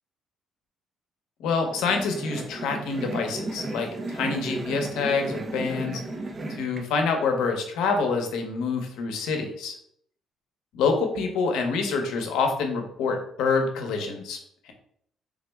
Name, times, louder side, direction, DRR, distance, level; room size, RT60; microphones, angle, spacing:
voice 1, 1.4-6.0 6.6-9.7 10.7-14.4 14.7-14.8, left 4 dB, 90° left, 4 dB, 0.7 m, -26 dB
sound 1, 1.7-6.8, right 2 dB, 25° right, 0.4 m, -34 dB
3.5 x 2.0 x 3.3 m, 0.66 s
cardioid pair, 140°, 0 cm